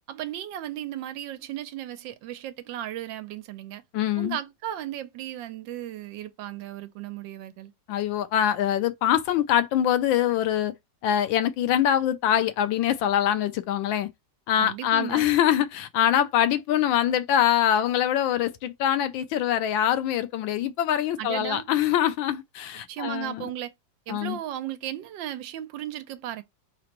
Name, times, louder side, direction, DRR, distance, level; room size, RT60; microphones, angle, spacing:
voice 1, 0.1-3.8 4.2-7.7 14.6-15.3 21.2-21.6 22.9-23.7 24.1-26.4, right 12 dB, 80° right, 1.3 m, -35 dB
voice 2, 3.9-4.4 7.9-10.7 11.0-14.1 14.5-23.4 24.1-24.4, left 10 dB, 85° left, 1.4 m, -24 dB
4.2 x 3.9 x 3.0 m
omnidirectional pair, 2.1 m